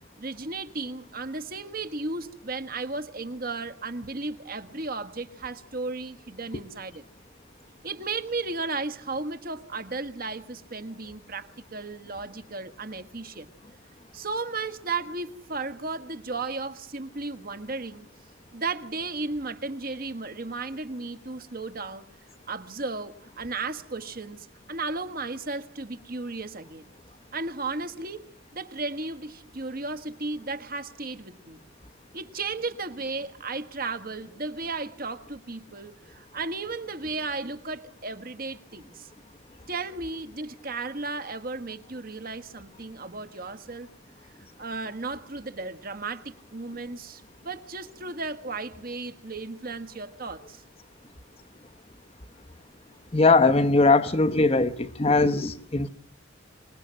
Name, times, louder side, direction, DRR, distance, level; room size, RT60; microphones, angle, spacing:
voice 1, 0.2-7.0 7.8-13.5 14.1-18.1 18.5-22.0 22.5-26.8 27.3-28.3 28.5-31.6 32.1-39.1 39.7-43.9 44.6-50.6, right 3 dB, 45° right, 1.6 m, -34 dB
voice 2, 53.1-55.9, left 3 dB, 30° left, 1.0 m, -20 dB
26.5 x 20.0 x 7.6 m
head